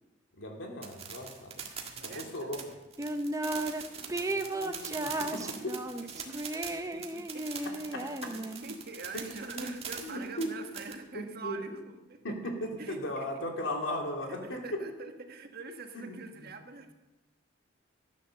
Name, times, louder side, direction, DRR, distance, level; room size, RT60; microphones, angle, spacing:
voice 1, 0.4-1.6 2.0-2.7 5.3-5.7 7.9-8.0 9.1-9.7 10.0-10.5 11.1-11.6 12.2-14.6 15.9-16.5, left 1 dB, 75° left, 1 dB, 2.9 m, -37 dB
sound 1, 0.8-10.9, right 6 dB, 30° right, 1.8 m, -42 dB
voice 2, 1.8-2.5 3.5-7.6 8.3-12.2 12.8-13.3 14.3-16.9, right 3 dB, 55° right, 5 dB, 1.5 m, -46 dB
sound 2, 3.0-3.8 4.1-8.7, right 1 dB, 15° right, 0.7 m, -34 dB
14.5 x 9.4 x 6.6 m, 1.0 s
head